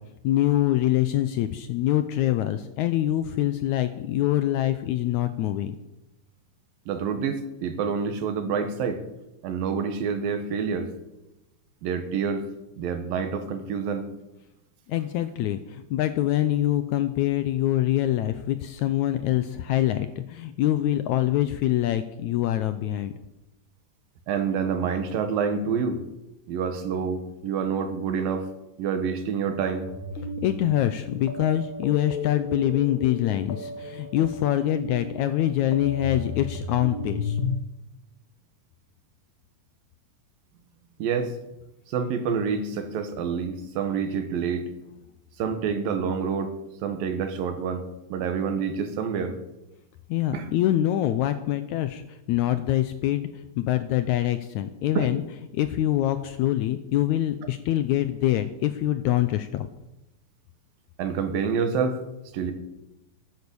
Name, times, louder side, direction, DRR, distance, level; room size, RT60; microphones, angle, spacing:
voice 1, 0.2-5.8 14.9-23.1 30.4-37.4 50.1-55.2 55.5-59.7, left 13 dB, 80° left, 11 dB, 1.7 m, -25 dB
voice 2, 6.9-9.0 9.4-10.9 11.8-12.4 12.8-14.1 24.3-26.0 26.5-28.5 28.8-29.9 41.0-41.3 41.9-44.7 45.4-46.6 46.8-49.4 50.3-50.5 55.0-55.1 61.0-62.0 62.3-62.5, right 6 dB, 85° right, 8 dB, 3.2 m, -27 dB
sound 1, 29.8-37.6, left 3 dB, 45° left, 1.9 m, -34 dB
14.0 x 11.0 x 7.0 m, 0.95 s
omnidirectional pair, 4.0 m